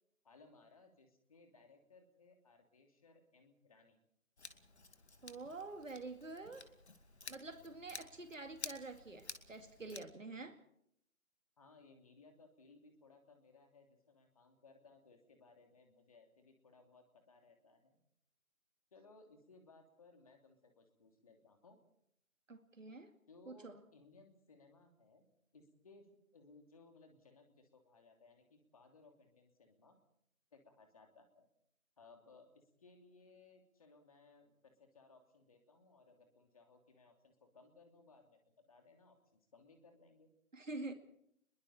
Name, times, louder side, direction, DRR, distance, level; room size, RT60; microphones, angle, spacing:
voice 1, 0.2-4.0 11.6-18.0 18.9-21.8 23.3-25.2 25.5-30.0 30.5-31.5 32.0-38.4 38.7-40.3, left 3 dB, 25° left, 4 dB, 2.9 m, -63 dB
Scissors, 4.4-10.0, left 3 dB, 50° left, 2.4 m, -52 dB
voice 2, 5.2-6.7 7.3-10.6 22.5-23.1 23.5-23.8 40.5-40.9, right 3 dB, 65° right, 8 dB, 2.3 m, -47 dB
29.5 x 22.0 x 4.3 m, 0.70 s
figure-of-eight pair, 160°, 42 cm